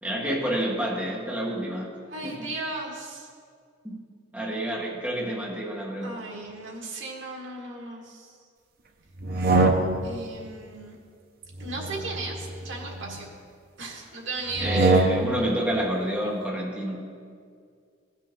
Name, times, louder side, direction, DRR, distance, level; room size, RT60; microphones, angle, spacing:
voice 1, 0.0-1.9 2.2-2.5 3.8-4.0 4.3-6.2 14.6-17.1, right 1 dB, 10° right, -4 dB, 1.2 m, -29 dB
voice 2, 2.1-3.3 6.0-8.4 10.0-11.0 11.6-13.3 13.8-14.9, right 2 dB, 75° right, -1 dB, 1.8 m, -36 dB
sound 1, 9.2-10.3 11.5-13.2 14.5-15.5, right 2 dB, 50° right, 0.7 m, -24 dB
16.5 x 5.7 x 3.7 m, 2.2 s
head